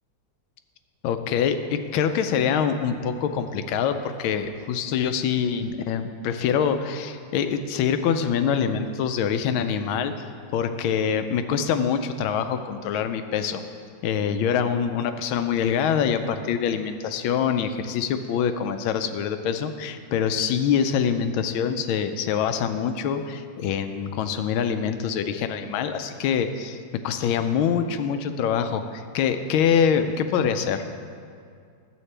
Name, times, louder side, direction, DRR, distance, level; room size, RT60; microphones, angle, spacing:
voice 1, 1.0-10.1 10.5-13.6 14.0-30.8, left 7 dB, 80° left, 9 dB, 1.4 m, -25 dB
12.5 x 8.0 x 3.3 m, 2.2 s
omnidirectional pair, 2.2 m